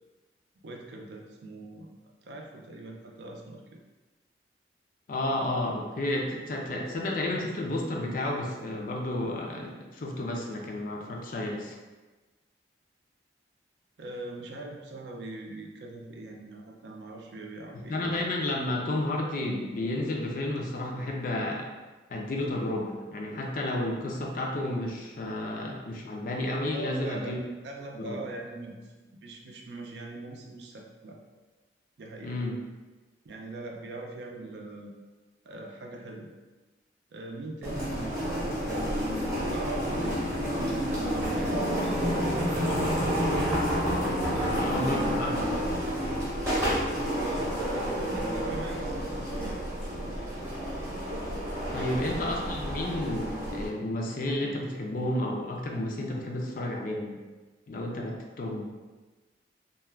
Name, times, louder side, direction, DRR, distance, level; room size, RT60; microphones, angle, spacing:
voice 1, 0.6-1.9 2.2-3.8 14.0-18.2 26.7-27.4 27.6-31.2 32.0-32.3 33.2-34.9 35.4-36.3 37.1-42.9 44.3-44.9 47.2-49.7 51.7-52.0, right 2 dB, 65° right, 0 dB, 0.4 m, -41 dB
voice 2, 5.1-11.8 17.9-21.7 22.1-27.4 28.0-28.2 32.2-32.6 44.4-45.5 51.7-57.2 57.7-58.7, left 1 dB, 50° left, 0 dB, 0.4 m, -31 dB
sound 1, 37.6-53.7, equal, 15° right, 0.7 m, -29 dB
2.3 x 2.2 x 3.3 m, 1.2 s
head